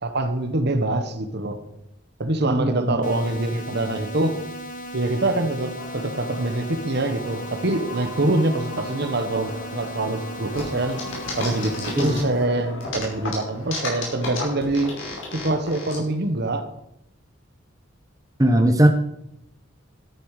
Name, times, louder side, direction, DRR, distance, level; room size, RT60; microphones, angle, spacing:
voice 1, 0.0-1.6 2.2-4.3 4.9-11.0 11.4-14.9 15.3-16.6, right 2 dB, 55° right, 8 dB, 1.4 m, -24 dB
voice 2, 2.5-3.1 12.0-12.2 18.4-18.9, right 1 dB, 15° right, 4 dB, 0.9 m, -19 dB
sound 1, 3.0-12.0, equal, 40° left, 1.4 m, -36 dB
sound 2, 5.8-15.6, left 1 dB, 85° left, 4.2 m, -40 dB
sound 3, 10.5-12.4 12.8-16.0, left 3 dB, 70° left, 5.0 m, -32 dB
12.5 x 10.0 x 5.0 m, 0.79 s
head